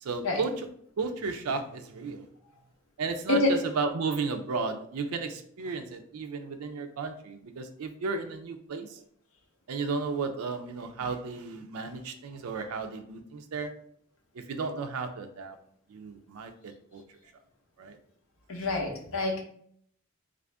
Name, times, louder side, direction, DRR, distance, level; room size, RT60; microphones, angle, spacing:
voice 1, 0.0-0.5 1.0-2.3 3.0-9.0 9.7-13.7 14.4-15.6 15.9-17.0 17.8-18.0, right 4 dB, 85° right, 6 dB, 0.4 m, -34 dB
voice 2, 3.3-3.7 18.5-19.4, left 2 dB, 70° left, 1 dB, 0.8 m, -26 dB
3.4 x 2.5 x 3.3 m, 0.65 s
head